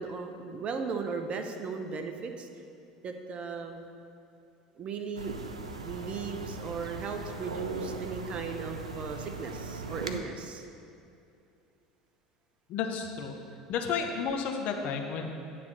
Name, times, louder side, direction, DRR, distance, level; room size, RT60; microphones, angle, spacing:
voice 1, 0.0-2.5 3.0-3.9 4.8-5.3 5.8-10.7, right 5 dB, 35° right, 5 dB, 0.7 m, -37 dB
sound 1, 5.2-10.2, right 3 dB, 80° right, 0.4 m, -39 dB
voice 2, 12.7-13.4 13.7-15.2, left 6 dB, 50° left, 3 dB, 0.7 m, -32 dB
9.3 x 3.4 x 6.4 m, 2.6 s
figure-of-eight pair, 70°, 3 cm